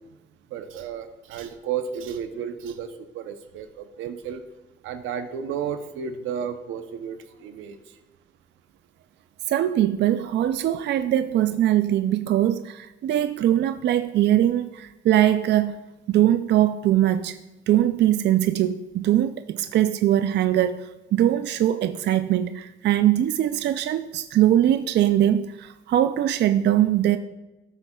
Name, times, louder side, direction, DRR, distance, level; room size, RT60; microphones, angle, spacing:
voice 1, 0.5-4.4 4.8-8.0, right 7 dB, 90° right, 0.7 m, -33 dB
voice 2, 9.5-15.8 16.1-17.4 17.7-27.2, right 12 dB, 60° right, 0.4 m, -21 dB
13.5 x 7.1 x 2.3 m
cardioid pair, 90°, 20 cm